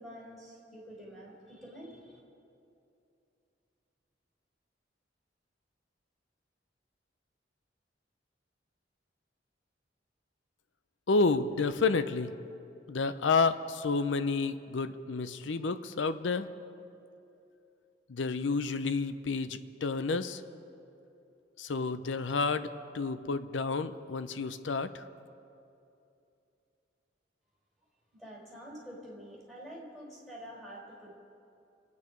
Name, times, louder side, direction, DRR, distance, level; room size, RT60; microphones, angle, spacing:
voice 1, 0.0-2.2 28.1-31.2, equal, 5° left, -5 dB, 4.4 m, -47 dB
voice 2, 11.1-12.3 12.9-16.5 18.1-20.4 21.6-22.7 22.9-25.0, left 4 dB, 90° left, 12 dB, 0.6 m, -30 dB
26.0 x 9.6 x 5.2 m, 2.7 s
head